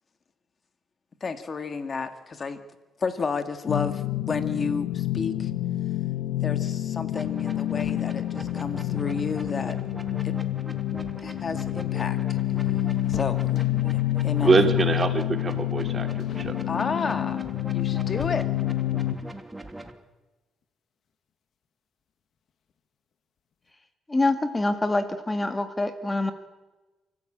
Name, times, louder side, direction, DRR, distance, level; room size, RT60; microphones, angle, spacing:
voice 1, 1.2-2.6 3.0-5.5 6.4-9.8 10.2-10.3 11.2-12.4 13.1-13.4 14.2-14.6 16.7-17.4 17.7-18.5, left 5 dB, 40° left, 9 dB, 2.0 m, -31 dB
sound 1, 3.7-19.2, left 14 dB, 85° left, 1.1 m, -28 dB
sound 2, 7.1-19.9, right 1 dB, 10° right, 2.6 m, -42 dB
sound 3, 11.4-14.1 14.9-15.2 15.5-15.8 16.2-16.6 17.4-18.9 20.6-20.7 21.1-21.2 22.4-22.8 23.1-23.2 23.5-23.7, left 6 dB, 65° left, 2.1 m, -46 dB
voice 2, 14.4-16.6, right 4 dB, 35° right, 6 dB, 3.0 m, -24 dB
voice 3, 24.1-26.3, left 2 dB, 15° left, 8 dB, 1.8 m, -25 dB
29.5 x 14.5 x 8.8 m, 1.2 s
cardioid pair, 90°, 0 cm